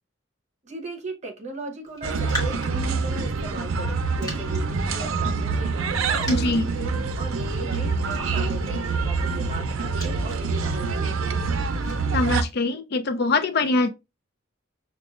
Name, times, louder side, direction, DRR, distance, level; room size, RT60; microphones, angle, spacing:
voice 1, 0.6-11.6, right 3 dB, 35° right, 0.8 m, -38 dB
Raindrop, 1.9-12.5, equal, 20° left, 1.5 m, -42 dB
sound 1, 2.0-12.4, right 4 dB, 85° right, 0.5 m, -26 dB
voice 2, 6.3-6.7 12.1-13.9, left 3 dB, 55° left, 0.5 m, -23 dB
6.0 x 2.3 x 2.4 m
head